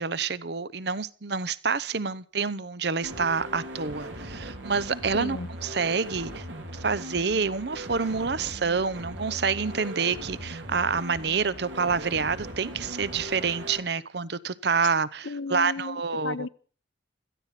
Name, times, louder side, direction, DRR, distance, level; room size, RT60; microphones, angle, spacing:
voice 1, 0.0-6.4 6.8-16.4, right 5 dB, 55° right, 0.7 m, -28 dB
sound 1, 3.0-13.8, equal, 80° right, 3.4 m, -39 dB
voice 2, 5.1-5.5 15.2-16.5, left 3 dB, 70° left, 0.8 m, -34 dB
17.0 x 14.0 x 5.8 m
head